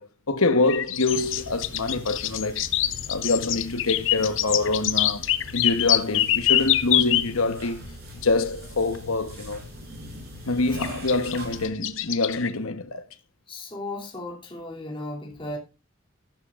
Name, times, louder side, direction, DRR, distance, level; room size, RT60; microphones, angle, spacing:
voice 1, 0.0-2.6 3.1-5.2 5.5-7.8 8.2-9.6 10.4-13.0, left 3 dB, 85° left, 1.2 m, -25 dB
sound 1, 0.7-7.3 8.9-9.0 10.8-12.5, left 13 dB, 65° left, 0.7 m, -24 dB
sound 2, 1.1-11.7, equal, 50° right, 6.7 m, -41 dB
voice 2, 13.5-15.6, left 2 dB, 25° left, 2.9 m, -35 dB
13.5 x 12.0 x 2.5 m
head